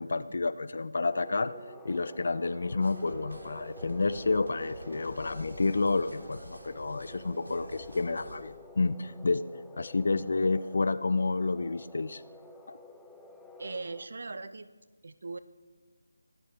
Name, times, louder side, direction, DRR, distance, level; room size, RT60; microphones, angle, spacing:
voice 1, 0.0-1.5 1.8-9.5 9.8-12.2 12.7-12.8, left 3 dB, 60° left, 16 dB, 0.7 m, -30 dB
sound 1, 1.1-14.1, left 1 dB, 5° left, 0.7 m, -50 dB
sound 2, 2.8-8.4, right 1 dB, 90° right, 2.9 m, -48 dB
voice 2, 13.6-14.7 15.0-15.4, right 3 dB, 60° right, 14 dB, 0.9 m, -40 dB
24.0 x 13.0 x 3.5 m, 1.4 s
figure-of-eight pair, 160°, 0 cm